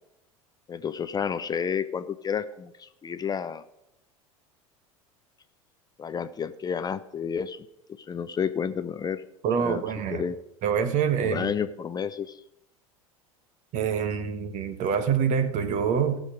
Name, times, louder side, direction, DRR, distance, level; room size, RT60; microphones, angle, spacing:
voice 1, 0.7-3.6 6.0-7.7 8.0-9.2 9.6-9.8 10.1-10.4 11.2-12.4, left 7 dB, 20° left, 11 dB, 0.6 m, -30 dB
voice 2, 9.4-10.2 10.6-11.5 13.7-16.2, right 7 dB, 40° right, 11 dB, 1.4 m, -26 dB
17.5 x 6.5 x 5.1 m, 0.86 s
figure-of-eight pair, 75°, 18 cm